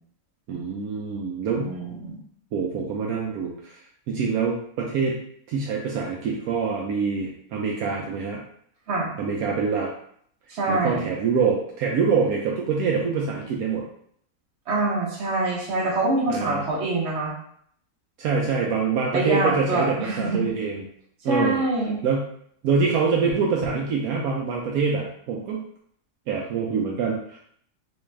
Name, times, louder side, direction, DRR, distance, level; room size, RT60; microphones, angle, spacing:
voice 1, 0.5-1.7 2.5-3.8 4.1-5.2 5.5-8.4 9.2-9.9 10.7-13.8 16.3-16.6 18.2-20.8 21.2-21.6 22.0-22.3 22.6-25.6 26.3-27.4, right 5 dB, 75° right, -2 dB, 1.0 m, -25 dB
voice 2, 1.5-2.2 8.9-9.1 10.5-11.1 14.7-17.3 19.1-20.4 21.3-22.0, right 2 dB, 50° right, -3 dB, 1.1 m, -25 dB
4.2 x 2.3 x 3.1 m, 0.65 s
omnidirectional pair, 1.6 m